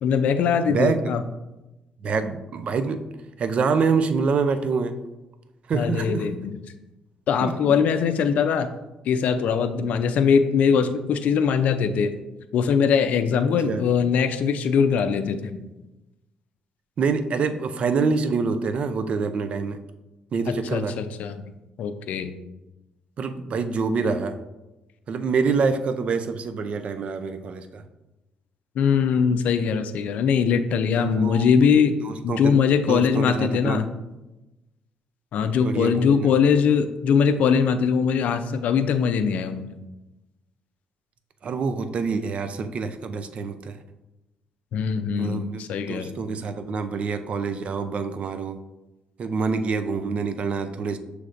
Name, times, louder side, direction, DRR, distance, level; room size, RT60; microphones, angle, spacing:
voice 1, 0.0-1.2 5.7-6.6 7.3-8.7 9.1-12.1 12.5-15.6 20.5-21.4 21.8-22.3 28.8-32.0 32.2-33.9 35.3-39.7 44.7-46.1, left 6 dB, 70° left, 9 dB, 0.4 m, -21 dB
voice 2, 2.0-3.0 3.4-5.0 5.7-6.3 7.4-7.7 13.6-13.8 17.0-19.8 20.3-20.9 23.2-24.4 25.1-27.8 30.9-31.5 32.0-32.5 32.9-33.8 35.5-36.3 41.4-43.8 45.2-45.6 45.9-48.6 49.2-51.0, right 5 dB, 50° right, 10 dB, 0.4 m, -26 dB
6.3 x 3.2 x 2.5 m, 1.0 s
cardioid pair, 90°, 3 cm